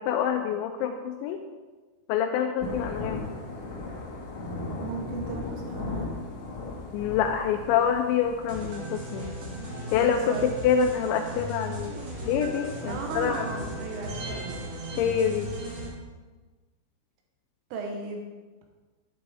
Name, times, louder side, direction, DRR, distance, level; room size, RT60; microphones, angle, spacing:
voice 1, 0.0-1.4 2.1-3.2 6.9-9.3 9.9-10.4 10.6-13.5 15.0-15.5, left 8 dB, 85° left, 5 dB, 2.7 m, -26 dB
Thunder / Rain, 2.6-8.6, left 3 dB, 55° left, 2.4 m, -36 dB
voice 2, 4.8-6.1 10.0-10.5 10.8-10.9 12.9-14.5 17.7-18.3, right 4 dB, 80° right, 1 dB, 3.6 m, -36 dB
sound 1, 8.5-15.9, right 1 dB, 40° right, 2.7 m, -36 dB
12.0 x 9.8 x 3.5 m, 1.3 s
omnidirectional pair, 5.9 m